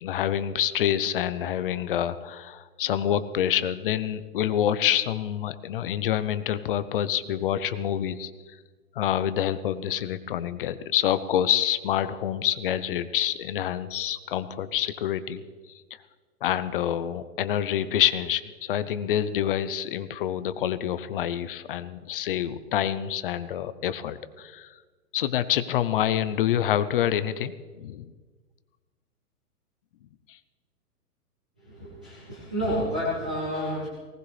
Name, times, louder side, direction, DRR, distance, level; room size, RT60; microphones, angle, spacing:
voice 1, 0.0-8.3 9.0-15.4 16.4-24.7 25.1-28.1 30.3-30.4, left 10 dB, 35° left, 14 dB, 0.6 m, -27 dB
voice 2, 31.6-33.9, equal, 5° right, -8 dB, 0.3 m, -30 dB
19.5 x 18.0 x 3.3 m, 1.4 s
hypercardioid pair, 145°, 47 cm